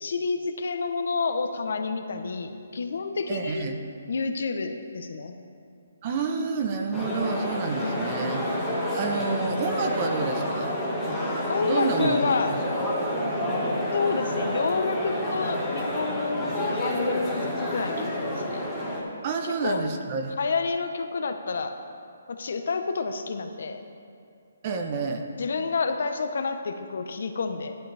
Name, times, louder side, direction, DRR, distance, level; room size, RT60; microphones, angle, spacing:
voice 1, 0.0-3.7 4.1-5.3 7.8-8.0 11.5-12.6 13.9-18.6 19.6-19.8 20.4-21.7 22.4-23.8 25.4-27.8, left 4 dB, 65° left, 7 dB, 0.9 m, -29 dB
voice 2, 3.3-3.8 6.0-8.5 8.9-10.7 11.6-12.2 19.2-20.4 24.6-25.3, right 4 dB, 35° right, 4 dB, 0.8 m, -29 dB
sound 1, 6.9-19.0, equal, ahead, 1.8 m, -29 dB
12.5 x 11.0 x 3.4 m, 2.3 s
hypercardioid pair, 160°, 0 cm